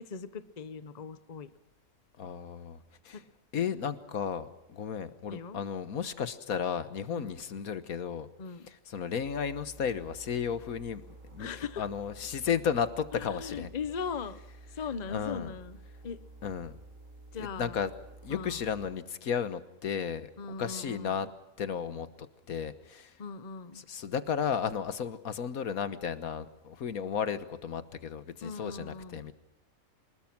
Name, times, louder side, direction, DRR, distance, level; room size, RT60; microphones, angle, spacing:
voice 1, 0.0-1.5 3.1-3.2 5.3-5.6 7.1-7.4 8.4-8.7 11.4-11.8 13.1-14.4 14.7-15.8 16.0-16.2 17.3-17.8 18.3-18.6 20.4-21.2 23.2-23.8 28.4-29.3, left 5 dB, 35° left, 13 dB, 0.9 m, -39 dB
voice 2, 2.2-2.8 3.0-3.2 3.5-8.3 8.7-11.0 11.3-13.7 15.1-15.5 16.4-16.7 17.4-17.9 18.2-20.3 20.6-21.3 21.6-22.1 22.5-23.1 23.7-29.3, left 7 dB, 85° left, 12 dB, 1.7 m, -34 dB
sound 1, 9.2-18.9, right 2 dB, 65° right, 2.5 m, -51 dB
25.0 x 20.5 x 6.0 m, 0.90 s
omnidirectional pair, 1.5 m